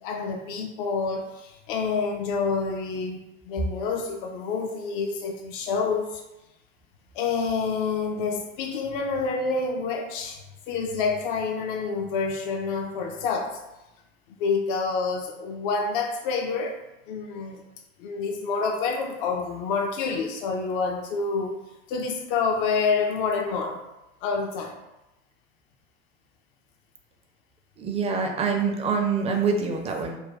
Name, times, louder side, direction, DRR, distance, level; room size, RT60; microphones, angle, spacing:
voice 1, 0.0-6.2 7.1-13.6 14.4-16.8 17.1-17.6 18.0-21.6 21.9-23.8 24.2-24.8, left 4 dB, 55° left, 3 dB, 0.4 m, -28 dB
voice 2, 27.8-30.2, right 5 dB, 20° right, 2 dB, 0.4 m, -25 dB
2.5 x 2.1 x 3.8 m, 0.96 s
figure-of-eight pair, 70°, 32 cm